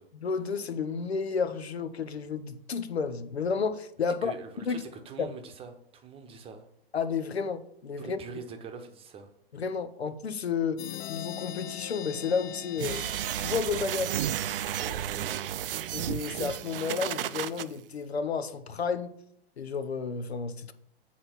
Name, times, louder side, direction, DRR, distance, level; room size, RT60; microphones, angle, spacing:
voice 1, 0.2-4.3 4.7-4.8 5.2-5.3 6.9-8.2 9.5-10.8 11.1-13.0 13.4-14.1 15.9-19.1 19.6-20.7, left 5 dB, 85° left, 12 dB, 0.8 m, -31 dB
voice 2, 4.2-6.7 8.0-9.3 14.8-15.5, right 5 dB, 20° right, 5 dB, 0.9 m, -44 dB
sound 1, 10.8-14.3, left 13 dB, 25° left, 0.4 m, -41 dB
sound 2, 12.8-17.6, right 11 dB, 60° right, 0.5 m, -32 dB
7.7 x 4.2 x 5.9 m, 0.71 s
hypercardioid pair, 115°, 31 cm